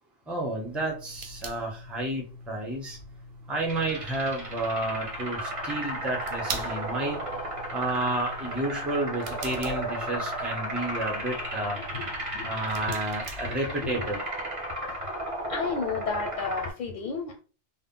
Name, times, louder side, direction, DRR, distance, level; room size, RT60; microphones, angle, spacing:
voice 1, 0.3-3.0 3.5-7.2 7.7-11.8 12.4-14.2, right 2 dB, ahead, 0.4 m, -31 dB
sound 1, 0.6-14.1, right 2 dB, 65° right, 0.8 m, -44 dB
sound 2, 3.7-16.7, right 1 dB, 35° right, 0.8 m, -34 dB
voice 2, 11.9-12.5 12.9-13.0 13.4-13.6 13.8-14.1 14.9-15.0 15.5-17.4, left 5 dB, 60° left, 0.6 m, -33 dB
2.1 x 2.1 x 3.6 m
omnidirectional pair, 1.2 m